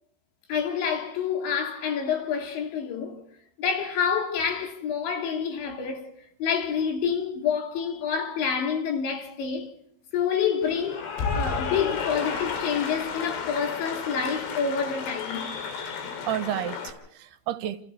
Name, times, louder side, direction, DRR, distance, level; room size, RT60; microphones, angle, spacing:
voice 1, 0.5-3.2 3.6-6.1 6.4-9.7 10.1-15.5, left 7 dB, 75° left, 5.3 m, -28 dB
Cheering / Applause, 10.6-16.9, left 5 dB, 90° left, 5.6 m, -32 dB
voice 2, 15.8-17.8, right 11 dB, 70° right, 2.8 m, -32 dB
29.0 x 28.0 x 3.4 m
omnidirectional pair, 5.3 m